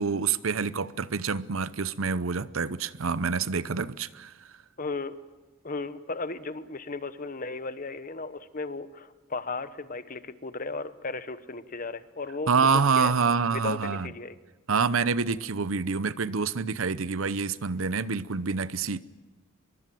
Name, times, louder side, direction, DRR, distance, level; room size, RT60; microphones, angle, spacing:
voice 1, 0.0-4.3 12.5-14.1 14.7-19.0, right 5 dB, 85° right, 0.8 m, -27 dB
voice 2, 4.8-5.1 5.6-13.1 13.5-14.4, left 3 dB, 40° left, 1.1 m, -35 dB
23.5 x 22.5 x 7.7 m
head